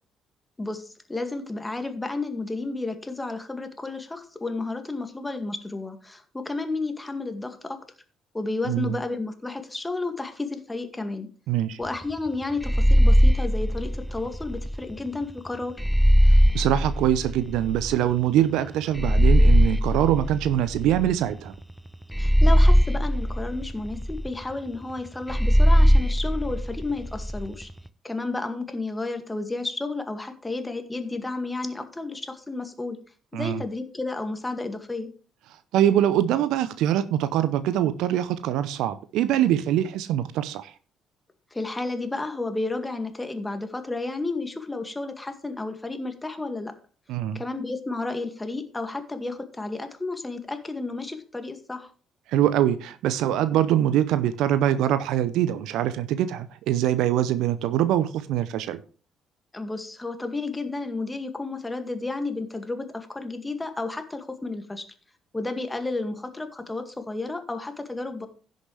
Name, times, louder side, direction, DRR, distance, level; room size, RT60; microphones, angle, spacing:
voice 1, 0.6-7.8 8.3-11.3 11.8-15.8 22.2-27.7 28.0-33.0 33.3-35.1 41.5-46.7 47.3-51.9 59.5-64.9 65.3-68.3, left 3 dB, 15° left, 2.0 m, -32 dB
voice 2, 8.7-9.0 11.5-11.8 16.5-21.5 33.3-33.6 35.7-40.7 47.1-47.4 52.3-58.8, right 11 dB, 70° right, 0.6 m, -23 dB
sound 1, 12.6-14.8 15.8-18.0 19.0-21.3 22.1-24.3 25.3-27.5, equal, ahead, 0.7 m, -20 dB
16.0 x 6.5 x 3.3 m
hypercardioid pair, 45°, 0 cm